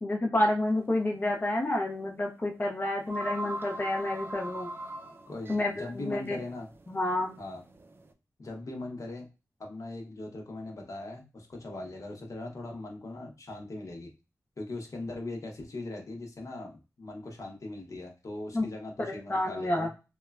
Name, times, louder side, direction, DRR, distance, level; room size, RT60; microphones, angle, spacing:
voice 1, 0.0-4.7 5.5-6.4 6.9-7.3 18.5-18.7 19.0-19.9, left 1 dB, 30° left, 0 dB, 0.5 m, -29 dB
sound 1, 0.7-0.9 1.3-1.4 2.5-2.6 2.8-8.1, right 1 dB, 35° right, 0.4 m, -41 dB
voice 2, 5.3-6.7 7.4-7.6 8.4-9.3 9.6-14.1 14.6-19.9, left 2 dB, 55° left, 1 dB, 0.8 m, -40 dB
3.0 x 2.2 x 2.2 m, 0.29 s
wide cardioid pair, 70°, 6 cm